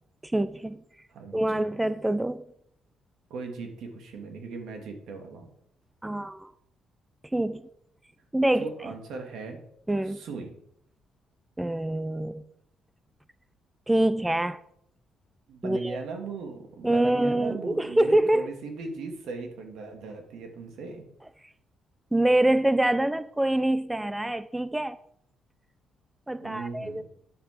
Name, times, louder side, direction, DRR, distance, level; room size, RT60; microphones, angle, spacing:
voice 1, 0.2-0.8 1.3-2.4 6.0-6.5 7.3-7.6 8.3-8.9 9.9-10.2 11.6-12.4 13.9-14.6 15.6-16.0 16.8-18.5 22.1-25.0 26.3-27.0, right 1 dB, 10° right, 0.4 m, -25 dB
voice 2, 1.1-1.6 3.3-5.5 8.6-9.6 10.1-10.6 15.5-21.0 26.4-27.0, right 4 dB, 80° right, 2.5 m, -38 dB
10.0 x 7.4 x 6.1 m
cardioid pair, 125°, 0 cm